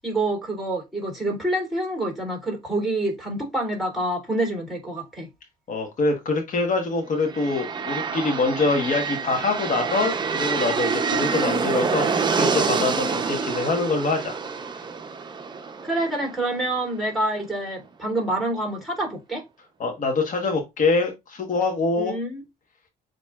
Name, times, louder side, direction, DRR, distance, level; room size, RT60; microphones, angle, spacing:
voice 1, 0.0-5.3 15.8-19.4 22.0-22.4, right 1 dB, ahead, 2.9 m, -27 dB
voice 2, 5.7-14.4 14.6-14.7 19.8-22.1, left 3 dB, 50° left, 1.2 m, -24 dB
sound 1, 7.2-17.0, right 5 dB, 25° right, 0.6 m, -27 dB
7.2 x 3.0 x 2.3 m
cardioid pair, 110°, 17 cm